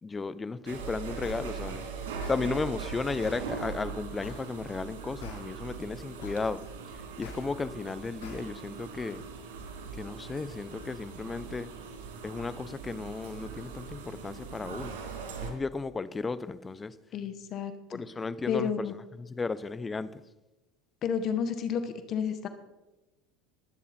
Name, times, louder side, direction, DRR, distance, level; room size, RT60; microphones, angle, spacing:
voice 1, 0.0-1.8 2.3-6.6 6.9-9.2 9.9-11.7 12.2-15.0 15.4-16.9 17.9-20.2, left 4 dB, 20° left, 0.7 m, -34 dB
sound 1, 0.7-15.5, right 5 dB, 85° right, 2.9 m, -41 dB
sound 2, 1.2-1.4 2.2-2.4 3.2-3.4 4.2-4.4 5.2-5.4 6.2-6.4 7.2-7.4 8.2-8.4, left 4 dB, 90° left, 4.1 m, -43 dB
voice 2, 17.1-18.0 18.5-18.9 21.0-22.5, left 7 dB, 50° left, 1.2 m, -31 dB
21.0 x 8.7 x 4.3 m
supercardioid pair, 105°, 0 cm